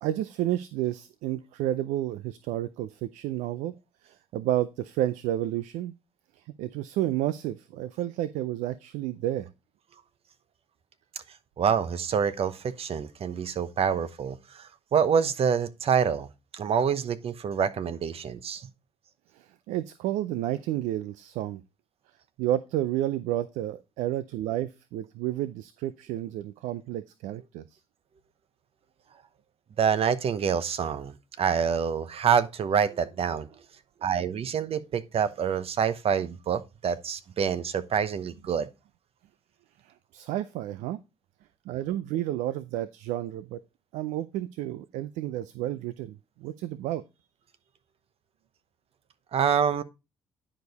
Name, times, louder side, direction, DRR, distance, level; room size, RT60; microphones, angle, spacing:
voice 1, 0.0-3.7 4.0-5.9 6.6-9.5 19.4-21.6 22.4-27.6 40.1-41.0 41.7-43.6 43.9-46.2 46.4-47.0, right 13 dB, 75° right, 0.5 m, -31 dB
voice 2, 11.6-16.3 16.5-18.7 29.8-33.5 34.0-38.7 49.3-49.8, right 7 dB, 55° right, 0.9 m, -26 dB
10.0 x 5.0 x 4.1 m
hypercardioid pair, 60°, 12 cm